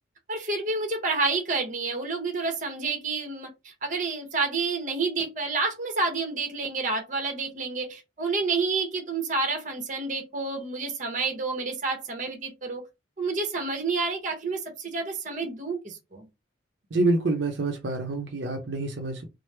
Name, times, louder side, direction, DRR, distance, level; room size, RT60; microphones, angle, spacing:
voice 1, 0.3-12.9 13.2-16.3, right 3 dB, 40° right, 0.9 m, -29 dB
voice 2, 16.9-19.3, right 2 dB, 70° right, 0.6 m, -27 dB
3.1 x 2.0 x 3.2 m
head